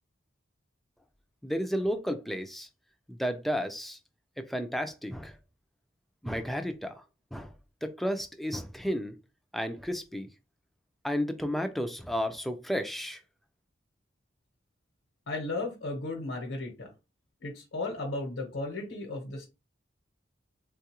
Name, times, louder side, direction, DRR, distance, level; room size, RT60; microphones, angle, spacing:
voice 1, 1.4-2.7 3.1-4.0 4.4-5.4 6.2-7.0 7.3-7.5 7.8-9.2 9.5-10.3 11.0-13.2, equal, ahead, 0.3 m, -32 dB
voice 2, 15.3-16.9 17.4-19.5, left 2 dB, 85° left, 0.9 m, -35 dB
3.7 x 2.3 x 2.9 m
head